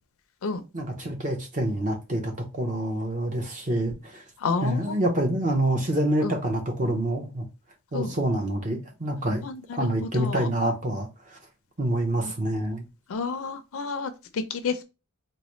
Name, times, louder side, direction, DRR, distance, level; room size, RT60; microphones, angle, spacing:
voice 1, 0.7-4.2 4.6-7.4 7.9-9.4 9.7-11.1 11.8-12.8, right 1 dB, 35° right, 0.8 m, -27 dB
voice 2, 4.4-5.0 6.2-6.3 7.9-8.1 9.4-10.5 13.1-14.8, left 4 dB, 65° left, 0.5 m, -30 dB
4.0 x 2.1 x 3.0 m
head